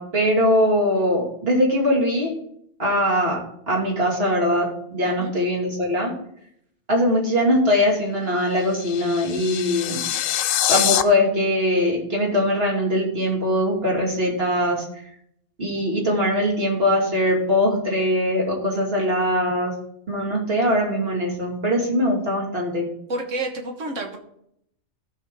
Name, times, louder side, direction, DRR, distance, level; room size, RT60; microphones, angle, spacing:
voice 1, 0.0-2.3 2.8-3.4 3.7-6.1 6.9-10.0 10.7-14.8 15.6-19.7 20.1-22.9, left 1 dB, 50° right, -2 dB, 2.6 m, -21 dB
sound 1, 8.3-11.0, left 11 dB, 80° left, 0.9 m, -24 dB
voice 2, 23.1-24.2, right 2 dB, 70° right, 3 dB, 1.7 m, -29 dB
14.5 x 5.8 x 3.7 m, 0.72 s
omnidirectional pair, 1.3 m